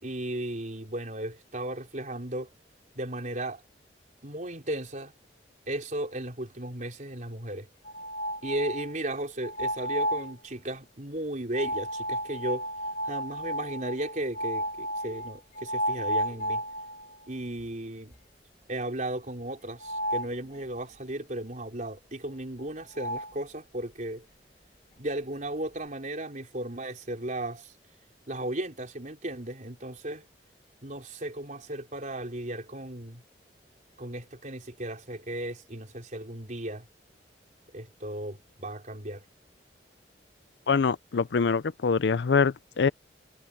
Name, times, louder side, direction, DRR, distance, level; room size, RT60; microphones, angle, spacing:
voice 1, 0.0-2.5 2.9-3.6 4.2-5.1 5.7-7.7 8.4-12.7 13.0-16.6 17.3-18.1 18.7-24.2 25.0-27.7 28.3-30.2 30.8-33.2 34.0-36.9 37.7-39.2, right 1 dB, 45° right, 4.3 m, -35 dB
sound 1, 7.8-8.9 9.4-10.3 11.5-17.2 17.6-17.7 18.1-18.2 19.8-20.4 22.6-22.7 22.9-23.3, equal, 45° left, 1.8 m, -32 dB
voice 2, 40.7-42.9, left 5 dB, 75° left, 0.5 m, -24 dB
head